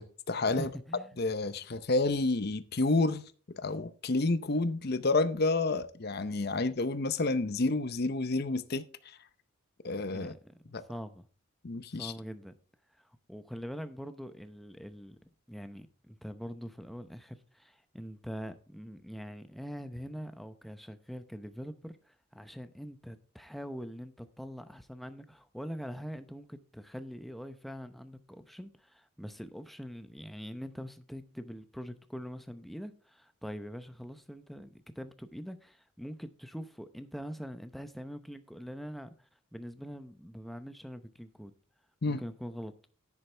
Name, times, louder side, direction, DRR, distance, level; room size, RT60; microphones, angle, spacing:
voice 1, 0.0-0.7 1.2-3.3 3.6-9.2 9.8-10.3 10.7-10.8 11.6-12.1 42.0-42.2, left 3 dB, 50° left, 0.7 m, -30 dB
voice 2, 0.6-1.1 10.1-10.6 10.9-11.3 11.9-12.5 13.0-41.5 42.1-42.7, equal, ahead, 0.7 m, -43 dB
10.5 x 9.9 x 3.4 m
head